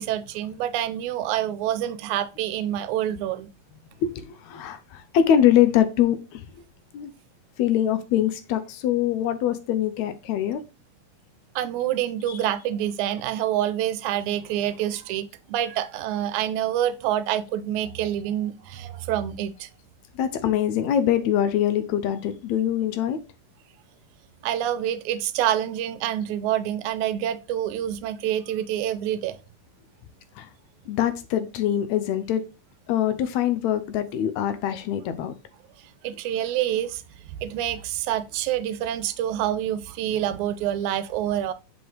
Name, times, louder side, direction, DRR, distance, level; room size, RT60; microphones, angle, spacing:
voice 1, 0.0-3.5 11.6-19.7 24.4-29.4 36.0-37.0 37.4-41.5, right 11 dB, 80° right, 2.0 m, -27 dB
voice 2, 4.0-6.4 6.9-7.1 7.6-10.6 12.3-12.4 20.2-23.2 30.4-30.5 30.9-32.4 32.9-35.3, left 10 dB, 75° left, 1.9 m, -23 dB
6.3 x 5.0 x 3.2 m
omnidirectional pair, 3.5 m